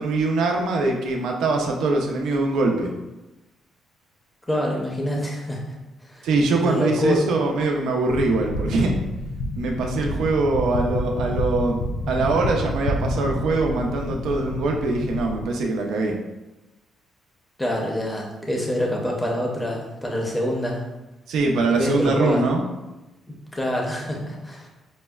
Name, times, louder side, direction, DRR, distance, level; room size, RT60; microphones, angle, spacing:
voice 1, 0.0-2.9 6.2-9.0 9.6-11.8 12.1-16.2 21.3-22.6, right 3 dB, 80° right, 1 dB, 0.5 m, -22 dB
voice 2, 4.5-5.7 6.1-6.3 6.6-7.2 17.6-20.9 21.7-22.4 23.3-24.7, left 1 dB, 10° left, -1 dB, 0.6 m, -26 dB
sound 1, 8.1-15.5, left 1 dB, 85° left, 0.3 m, -29 dB
5.2 x 2.1 x 2.3 m, 1.0 s
cardioid pair, 130°, 0 cm